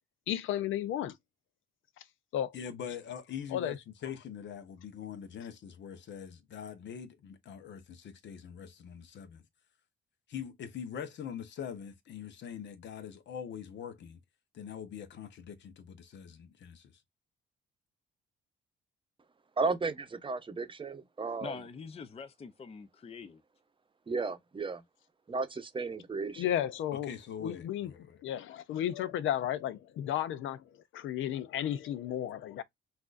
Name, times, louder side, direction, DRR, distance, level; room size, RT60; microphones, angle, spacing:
voice 1, 0.3-1.1 2.3-2.5 3.5-3.8 26.4-27.1 27.4-27.9 28.2-30.6 30.9-32.6, left 11 dB, 80° left, 0.6 m, -33 dB
voice 2, 2.5-9.4 10.3-14.2 14.5-16.9 26.9-28.2, left 8 dB, 65° left, 1.0 m, -43 dB
voice 3, 19.6-21.5 24.1-24.8 25.3-26.6, right 4 dB, 25° right, 0.8 m, -34 dB
voice 4, 21.4-23.4, left 5 dB, 30° left, 0.6 m, -44 dB
5.9 x 2.7 x 2.5 m
cardioid pair, 90°, 20 cm